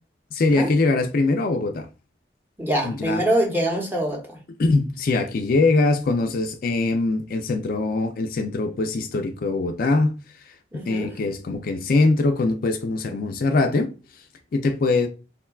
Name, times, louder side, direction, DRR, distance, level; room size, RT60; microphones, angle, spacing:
voice 1, 0.3-1.9 2.8-3.2 4.6-10.2 10.9-13.9 14.5-15.1, left 3 dB, 50° left, 0.4 m, -22 dB
voice 2, 2.6-4.4 10.7-11.1, right 1 dB, 10° right, 0.7 m, -24 dB
3.5 x 2.2 x 2.3 m
head